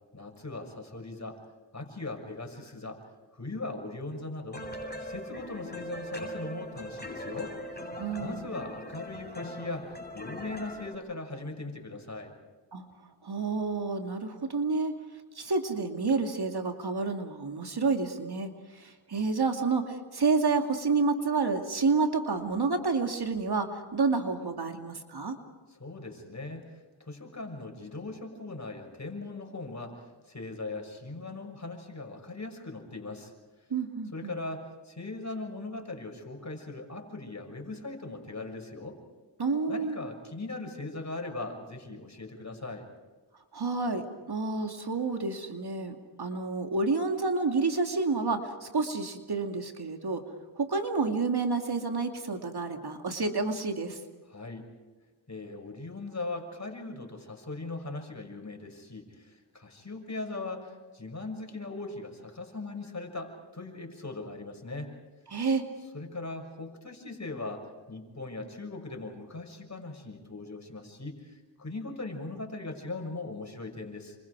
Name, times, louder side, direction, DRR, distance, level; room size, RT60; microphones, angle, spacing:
voice 1, 0.1-1.4 1.7-3.0 3.3-4.6 5.0-7.5 7.8-7.9 8.2-12.3 25.7-33.3 34.1-39.0 39.7-42.9 54.3-54.7 55.3-65.0 65.9-74.2, left 2 dB, 35° left, 3 dB, 6.4 m, -39 dB
sound 1, 4.5-11.0, equal, 20° left, 7.0 m, -40 dB
voice 2, 8.0-8.4 12.7-12.8 13.2-14.9 15.4-25.4 33.7-34.4 39.4-40.0 43.5-50.3 50.6-54.0 65.3-65.7, right 4 dB, 55° right, 5 dB, 2.6 m, -29 dB
29.0 x 26.0 x 4.8 m, 1.3 s
cardioid pair, 55°, 47 cm